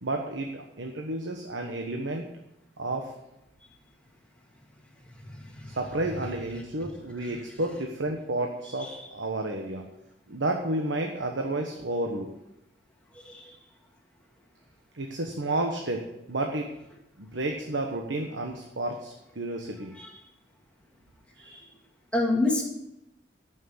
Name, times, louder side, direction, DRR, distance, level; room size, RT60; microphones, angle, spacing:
voice 1, 0.0-2.3 2.8-3.1 5.7-9.8 10.3-12.3 14.9-16.7 17.2-19.9 21.4-21.7, right 2 dB, 80° right, 2 dB, 1.2 m, -31 dB
voice 2, 22.1-22.6, left 2 dB, 5° left, -1 dB, 2.0 m, -26 dB
13.0 x 6.2 x 7.9 m, 0.89 s
head